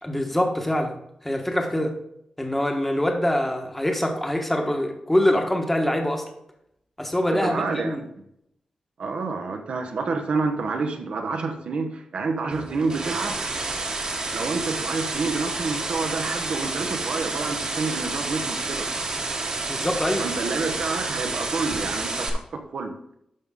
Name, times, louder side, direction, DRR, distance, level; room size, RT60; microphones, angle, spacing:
voice 1, 0.0-1.0 1.2-1.9 2.4-6.2 7.0-8.0 19.6-20.2, left 1 dB, 10° left, 3 dB, 1.2 m, -24 dB
voice 2, 7.3-8.1 9.0-13.4 14.3-18.9 20.2-22.9, right 4 dB, 65° right, 5 dB, 1.0 m, -28 dB
sound 1, 12.5-22.3, right 3 dB, 40° right, 1.4 m, -29 dB
12.0 x 5.4 x 3.7 m, 0.77 s
wide cardioid pair, 170°, 2 cm